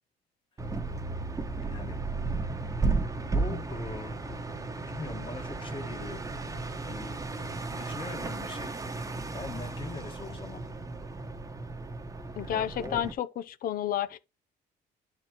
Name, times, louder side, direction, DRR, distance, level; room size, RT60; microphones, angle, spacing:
sound 1, 0.6-13.1, right 3 dB, 20° right, 1.0 m, -34 dB
voice 1, 1.6-2.0 3.2-4.2 4.8-6.2 6.9-7.2 7.6-10.6 12.5-13.0, left 3 dB, 30° left, 1.5 m, -42 dB
voice 2, 12.4-14.2, left 10 dB, 60° left, 0.7 m, -31 dB
11.0 x 4.4 x 3.0 m
cardioid pair, 110°, 17 cm